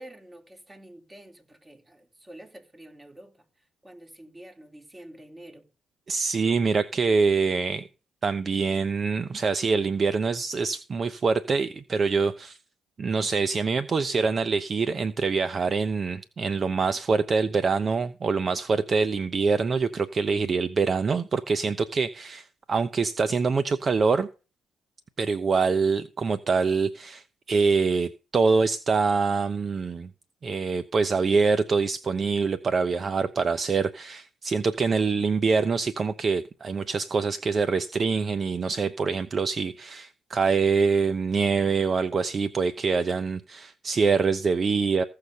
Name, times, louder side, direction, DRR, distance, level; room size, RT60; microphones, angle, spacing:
voice 1, 0.0-3.4 3.8-5.7, right 1 dB, 20° right, 3.8 m, -47 dB
voice 2, 6.1-7.9 8.2-12.6 13.0-24.3 25.2-30.1 30.4-45.0, right 4 dB, 45° right, 0.9 m, -25 dB
15.5 x 6.8 x 5.5 m
hypercardioid pair, 55°, 0 cm